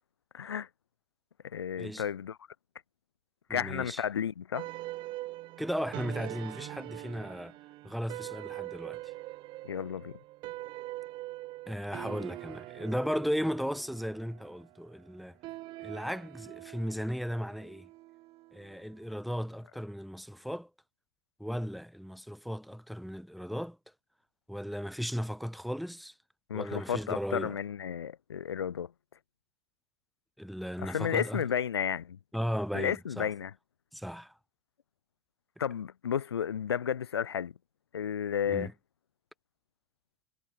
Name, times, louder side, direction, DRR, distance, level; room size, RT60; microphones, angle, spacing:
voice 1, 0.3-0.7 1.4-2.4 3.5-4.7 9.6-10.1 26.5-28.9 30.8-32.2 32.7-33.5 35.6-37.5 37.9-38.7, left 8 dB, 75° left, 0.5 m, -32 dB
voice 2, 3.5-4.0 5.6-7.6 7.8-9.0 11.7-15.4 15.8-17.9 18.5-20.7 21.4-23.8 24.5-26.1 26.5-27.6 30.4-31.4 32.3-33.3 33.9-34.3 38.5-38.7, equal, ahead, 1.6 m, -36 dB
sound 1, 4.5-19.1, right 18 dB, 35° right, 0.7 m, -43 dB
figure-of-eight pair, 85°, 14 cm